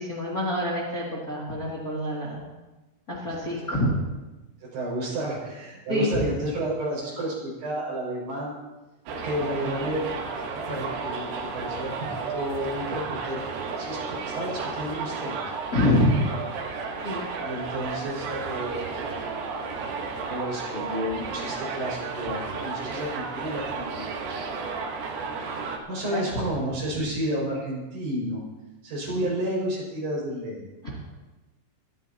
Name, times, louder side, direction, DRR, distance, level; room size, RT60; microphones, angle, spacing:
voice 1, 0.0-2.4 3.1-3.9 5.9-6.2 15.7-16.1 17.0-17.2 25.9-26.2 30.8-31.0, left 1 dB, 25° left, -5 dB, 2.3 m, -26 dB
voice 2, 4.6-8.5 9.1-10.2 10.7-15.4 17.4-24.2 25.9-28.4 28.8-30.7, right 1 dB, 60° right, -4 dB, 7.6 m, -31 dB
Subway metro underground, 9.1-25.8, right 4 dB, 80° right, 3.6 m, -33 dB
23.5 x 14.0 x 2.9 m, 1.1 s
omnidirectional pair, 4.8 m